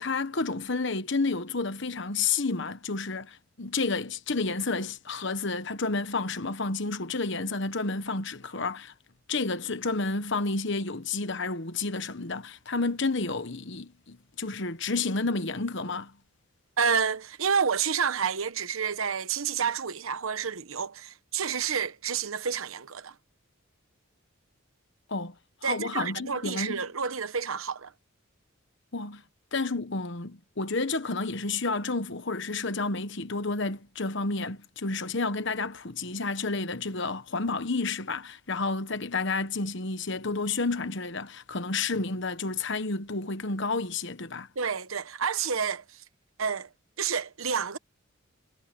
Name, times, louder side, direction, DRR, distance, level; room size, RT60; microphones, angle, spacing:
voice 1, 0.0-8.9 9.3-16.1 25.1-25.3 25.6-26.8 28.9-29.2 29.5-44.5, left 3 dB, 55° left, 1.2 m, -30 dB
voice 2, 16.8-23.1 25.6-27.9 44.6-46.0 46.4-46.7 47.0-47.8, right 6 dB, 75° right, 1.1 m, -29 dB
head